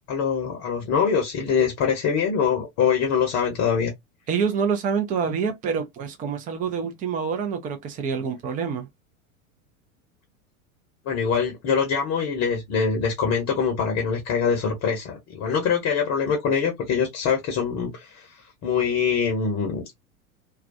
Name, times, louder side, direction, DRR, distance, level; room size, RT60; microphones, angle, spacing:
voice 1, 0.1-3.9 11.1-18.3 18.6-19.9, left 6 dB, 35° left, 0.8 m, -24 dB
voice 2, 4.3-8.9, right 6 dB, 20° right, 0.5 m, -26 dB
2.3 x 2.2 x 2.5 m
figure-of-eight pair, 90°, 43 cm